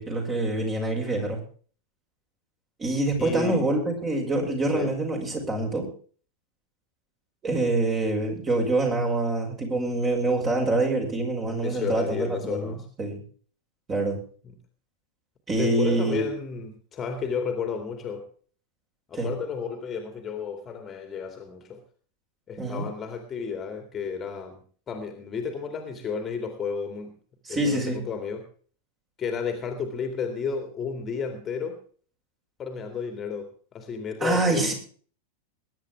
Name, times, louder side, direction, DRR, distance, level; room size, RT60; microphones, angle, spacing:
voice 1, 0.0-1.4 2.8-5.9 7.4-13.2 13.9-14.2 15.5-16.3 19.1-19.3 22.6-22.9 27.5-28.0 34.2-34.7, right 2 dB, 20° right, 1 dB, 5.7 m, -26 dB
voice 2, 3.2-3.7 4.7-4.9 11.5-12.8 15.6-18.2 19.1-21.8 22.5-24.6 24.9-27.1 27.5-28.4 29.2-31.8 32.6-34.7, left 6 dB, 25° left, 6 dB, 2.4 m, -32 dB
21.5 x 10.5 x 3.5 m, 0.43 s
figure-of-eight pair, 90°, 0 cm